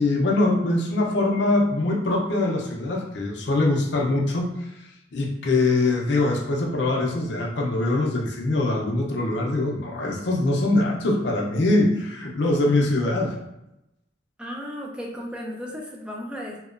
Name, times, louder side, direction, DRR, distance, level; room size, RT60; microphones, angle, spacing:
voice 1, 0.0-13.4, left 2 dB, 70° left, -1 dB, 0.5 m, -23 dB
voice 2, 14.4-16.6, equal, 5° right, -2 dB, 0.3 m, -34 dB
2.8 x 2.2 x 2.4 m, 0.88 s
head